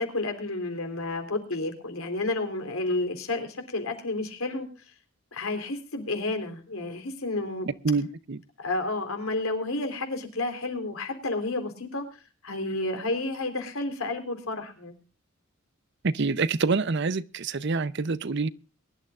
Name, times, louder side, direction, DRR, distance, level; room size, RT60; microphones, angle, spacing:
voice 1, 0.0-4.7 5.3-7.7 8.6-12.0 12.4-15.0, left 2 dB, 85° left, 3.7 m, -31 dB
voice 2, 7.8-8.4 16.0-18.5, right 4 dB, 55° right, 0.6 m, -26 dB
23.0 x 12.0 x 2.4 m
head